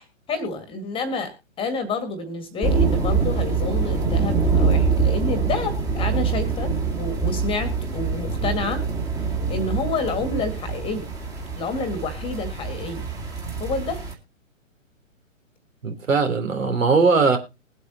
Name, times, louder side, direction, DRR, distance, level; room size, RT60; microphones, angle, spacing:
voice 1, 0.0-8.8 9.5-11.1 11.6-13.1 13.6-14.0, left 3 dB, 15° left, 1.8 m, -29 dB
sound 1, 2.6-14.1, right 5 dB, 10° right, 1.9 m, -24 dB
voice 2, 15.8-17.4, right 4 dB, 75° right, 3.6 m, -19 dB
21.0 x 8.2 x 2.8 m
figure-of-eight pair, 130°, 40 cm